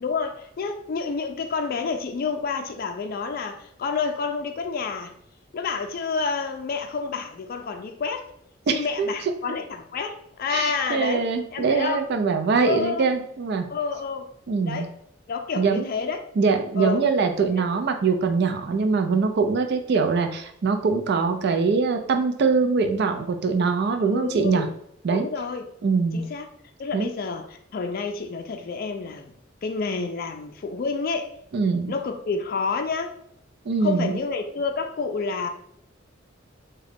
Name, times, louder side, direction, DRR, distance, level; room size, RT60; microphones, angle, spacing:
voice 1, 0.0-5.1 5.5-8.3 8.7-12.0 12.6-13.1 13.7-14.3 14.6-14.9 15.3-16.2 16.8-17.1 24.0-24.7 25.1-25.7 26.1-26.5 26.8-29.3 29.6-31.3 31.9-33.2 33.8-35.5, left 4 dB, 50° left, 5 dB, 0.4 m, -29 dB
voice 2, 8.7-9.1 10.5-13.7 14.5-14.9 15.6-15.9 16.4-24.7 25.0-25.3 25.8-26.2 26.9-27.1 31.5-31.9 33.7-34.1, right 4 dB, 60° right, 6 dB, 0.4 m, -23 dB
3.7 x 2.2 x 3.4 m, 0.71 s
head